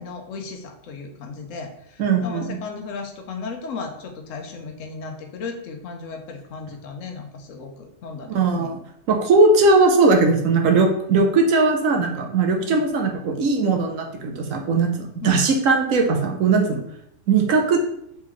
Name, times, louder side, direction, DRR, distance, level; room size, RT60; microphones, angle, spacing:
voice 1, 0.0-8.7 12.6-12.9 15.2-15.5, left 4 dB, 75° left, 4 dB, 1.1 m, -35 dB
voice 2, 2.0-2.6 8.3-8.8 9.1-16.8 17.3-17.8, right 3 dB, 80° right, 3 dB, 1.1 m, -19 dB
4.1 x 3.8 x 3.1 m, 0.74 s
omnidirectional pair, 1.4 m